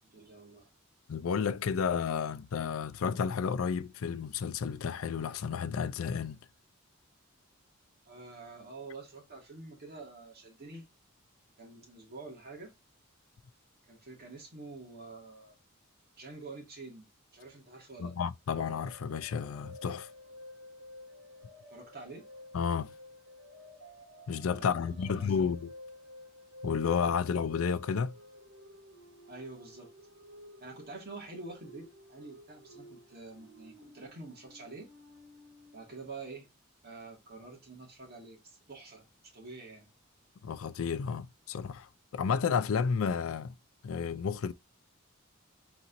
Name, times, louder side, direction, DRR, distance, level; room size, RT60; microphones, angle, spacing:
voice 1, 0.0-0.7 8.1-10.9 11.6-12.7 13.9-15.6 16.2-17.1 17.3-18.2 21.7-22.3 24.6-25.6 29.3-29.9 30.6-34.9 35.7-36.5 36.8-39.9, right 3 dB, 50° right, 2.1 m, -47 dB
voice 2, 1.1-6.4 18.0-20.1 22.5-22.9 24.3-25.7 26.6-28.1 40.4-43.5 43.8-44.5, left 6 dB, 70° left, 0.4 m, -31 dB
sound 1, 18.5-35.9, left 1 dB, 80° right, 2.4 m, -52 dB
4.3 x 4.0 x 2.5 m
head